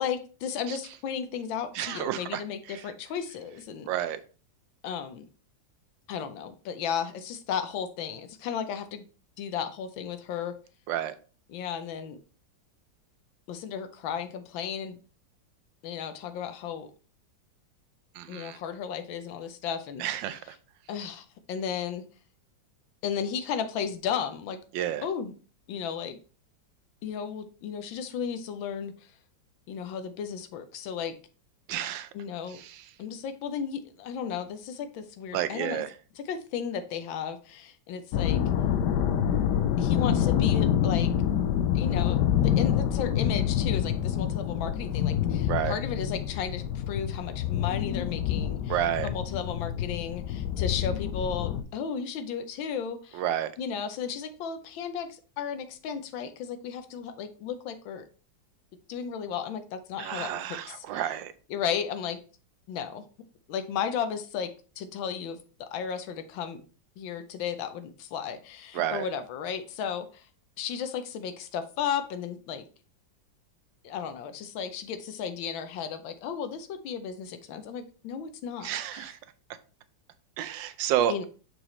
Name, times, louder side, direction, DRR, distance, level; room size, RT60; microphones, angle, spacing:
voice 1, 0.0-3.9 4.8-5.3 6.1-9.1 9.4-10.5 11.5-12.2 13.5-15.0 15.8-16.9 18.3-20.0 20.9-22.0 23.0-24.6 25.0-25.3 25.7-26.2 27.0-28.9 29.7-31.1 32.1-32.6 33.0-35.8 36.2-38.4 39.8-41.1 41.7-53.2 53.6-58.0 58.9-61.0 61.5-62.2 62.7-63.0 63.5-66.6 67.0-70.3 70.6-72.7 73.8-79.1 81.1-81.3, left 7 dB, 85° left, 9 dB, 1.5 m, -34 dB
voice 2, 1.7-2.8 3.9-4.2 10.9-11.1 18.1-18.6 20.0-20.6 24.7-25.0 31.7-32.1 32.5-32.8 35.3-35.9 45.5-45.7 48.7-49.1 53.1-53.5 60.0-61.3 68.7-69.1 78.6-79.2 80.4-81.1, right 11 dB, 80° right, 12 dB, 1.3 m, -30 dB
sound 1, 38.1-51.6, left 10 dB, 70° left, 1.1 m, -27 dB
6.3 x 4.8 x 3.1 m, 0.37 s
omnidirectional pair, 2.1 m